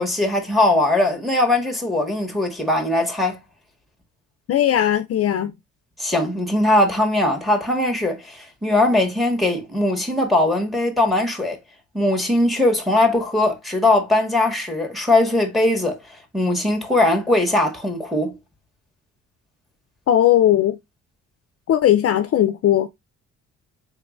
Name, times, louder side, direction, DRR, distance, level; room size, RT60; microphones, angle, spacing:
voice 1, 0.0-3.4 6.0-11.6 11.9-16.0 16.3-18.3, left 1 dB, ahead, 1.6 m, -20 dB
voice 2, 4.5-5.5 20.1-20.8 21.7-22.9, left 11 dB, 50° left, 0.5 m, -18 dB
4.0 x 3.6 x 2.4 m
cardioid pair, 90°, 30 cm